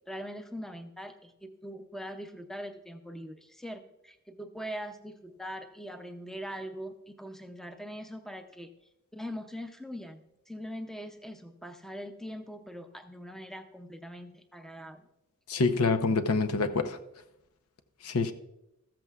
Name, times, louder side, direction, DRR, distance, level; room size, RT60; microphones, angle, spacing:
voice 1, 0.1-8.7 9.1-15.1, equal, ahead, 0.5 m, -42 dB
voice 2, 15.5-17.0 18.0-18.3, left 3 dB, 90° left, 0.8 m, -26 dB
14.5 x 13.5 x 2.4 m
head